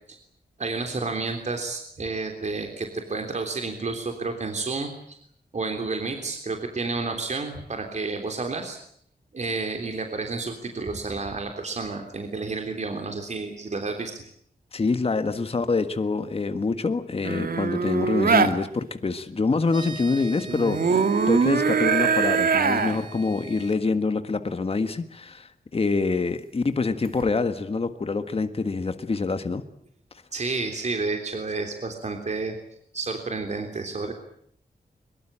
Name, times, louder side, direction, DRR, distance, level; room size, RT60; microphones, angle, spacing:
voice 1, 0.6-5.2 5.5-8.8 9.3-14.2 30.3-32.5 32.9-34.1, right 3 dB, 45° right, 4 dB, 3.4 m, -30 dB
voice 2, 14.7-29.6, left 4 dB, 35° left, 9 dB, 1.6 m, -26 dB
sound 1, 17.2-18.5 20.5-23.0 27.0-27.3, right 5 dB, 65° right, 2.1 m, -22 dB
sound 2, 19.7-23.8, right 3 dB, 25° right, 6.4 m, -43 dB
23.5 x 23.0 x 8.9 m, 0.68 s
wide cardioid pair, 145°, 16 cm